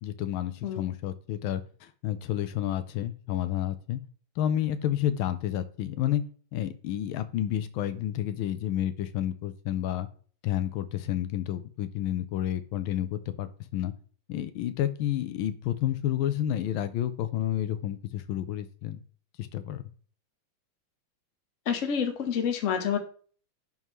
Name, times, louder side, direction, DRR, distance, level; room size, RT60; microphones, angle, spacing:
voice 1, 0.0-4.0 4.4-6.2 6.5-10.1 10.4-13.9 14.3-19.0 19.4-19.8, left 11 dB, 80° left, 11 dB, 1.4 m, -30 dB
voice 2, 21.7-23.0, left 7 dB, 50° left, 6 dB, 1.1 m, -28 dB
11.0 x 3.6 x 3.1 m, 0.43 s
omnidirectional pair, 2.2 m